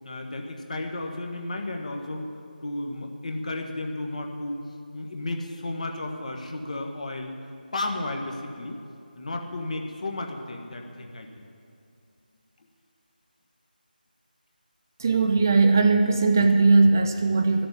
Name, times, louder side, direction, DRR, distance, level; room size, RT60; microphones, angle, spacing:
voice 1, 0.0-2.3 2.6-4.6 4.9-7.4 7.7-8.8 9.1-11.4, left 2 dB, 45° left, 2 dB, 1.5 m, -33 dB
voice 2, 15.0-17.7, right 3 dB, 20° right, 6 dB, 0.3 m, -19 dB
13.0 x 6.8 x 9.3 m, 2.5 s
figure-of-eight pair, 165°, 5 cm